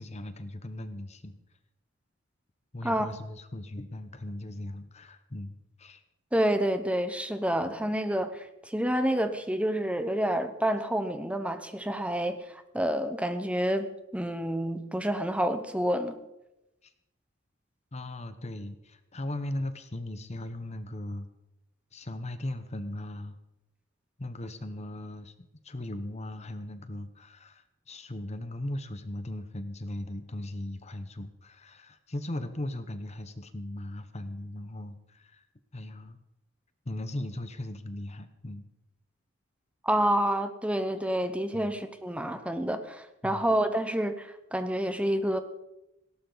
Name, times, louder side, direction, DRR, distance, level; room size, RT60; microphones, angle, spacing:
voice 1, 0.0-1.4 2.7-6.0 16.8-16.9 17.9-21.3 21.9-23.4 24.2-35.4 35.7-36.2 36.9-38.6 41.5-41.7 43.2-43.5, left 1 dB, 35° left, 10 dB, 0.9 m, -38 dB
voice 2, 6.3-16.2 39.8-45.4, right 1 dB, 5° right, 9 dB, 1.0 m, -28 dB
18.5 x 17.5 x 4.0 m, 0.92 s
head